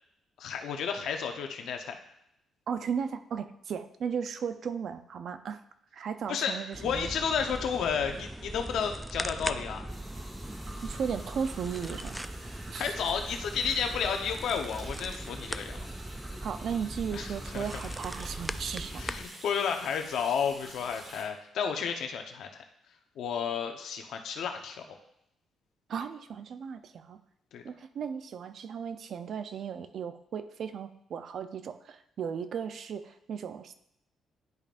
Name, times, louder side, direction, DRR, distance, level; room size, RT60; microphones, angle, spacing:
voice 1, 0.4-2.0 6.3-9.8 12.8-15.8 17.1-17.7 18.9-22.6 23.1-25.0 27.5-27.6, left 7 dB, 75° left, 5 dB, 0.9 m, -32 dB
voice 2, 2.7-5.6 5.9-7.1 10.8-12.2 12.7-12.9 16.4-19.0 25.9-27.2 27.6-33.7, right 7 dB, 60° right, 10 dB, 0.5 m, -36 dB
sound 1, 6.7-19.3, right 1 dB, 5° right, 0.3 m, -40 dB
sound 2, 9.9-21.2, right 1 dB, 35° right, 2.1 m, -48 dB
10.5 x 5.2 x 2.5 m, 0.77 s
cardioid pair, 90°, 0 cm